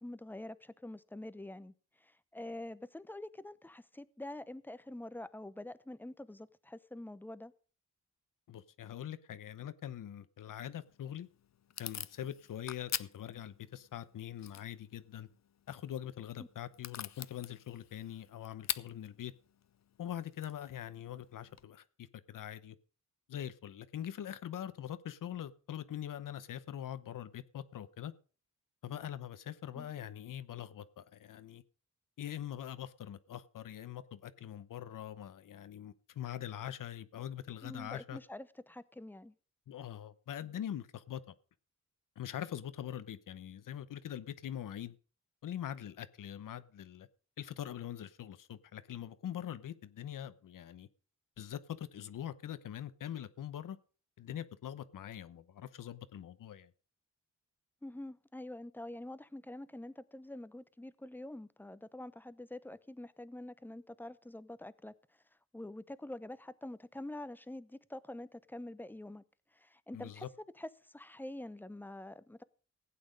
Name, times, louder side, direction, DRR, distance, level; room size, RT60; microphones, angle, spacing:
voice 1, 0.0-1.7 2.0-7.5 16.4-16.5 29.8-29.9 37.6-39.3 57.8-64.9 65.5-69.2 69.5-70.3 70.6-72.4, left 1 dB, 5° left, 0.7 m, -46 dB
voice 2, 8.5-11.3 11.8-15.3 15.7-19.3 20.0-22.8 23.3-28.1 28.8-31.6 32.2-38.2 39.7-41.3 42.2-45.0 45.4-47.1 47.4-50.9 51.4-53.8 54.2-56.7 69.9-70.3, left 10 dB, 85° left, 0.9 m, -43 dB
Packing tape duct tape / Tearing, 10.9-21.6, left 9 dB, 60° left, 0.6 m, -46 dB
16.0 x 8.7 x 5.2 m
cardioid pair, 85°, 31 cm